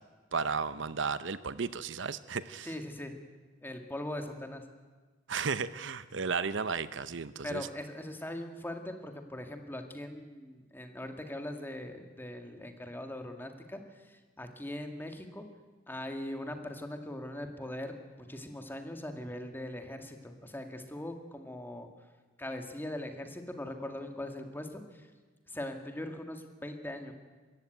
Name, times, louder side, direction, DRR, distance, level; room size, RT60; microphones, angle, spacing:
voice 1, 0.3-2.7 5.3-7.7, right 5 dB, 70° right, 14 dB, 0.7 m, -34 dB
voice 2, 2.6-3.1 3.6-4.6 7.4-13.8 14.1-15.5 15.9-21.9 22.4-25.1 25.5-27.1, left 1 dB, 10° left, 5 dB, 2.0 m, -41 dB
24.0 x 14.5 x 9.3 m, 1.4 s
head